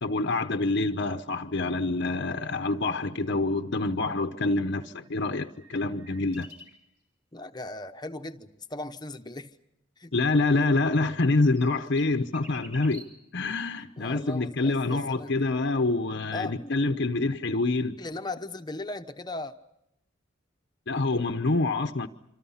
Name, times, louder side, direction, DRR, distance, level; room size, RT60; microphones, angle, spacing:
voice 1, 0.0-6.5 10.1-18.0 20.9-22.1, left 3 dB, 60° left, 0.9 m, -26 dB
sound 1, 5.0-6.9 11.1-13.3 16.3-16.4, right 1 dB, 10° right, 3.8 m, -50 dB
voice 2, 7.3-9.5 10.0-10.1 14.0-15.3 16.3-16.7 18.0-19.5, left 2 dB, 20° left, 1.0 m, -37 dB
27.5 x 26.5 x 5.7 m
head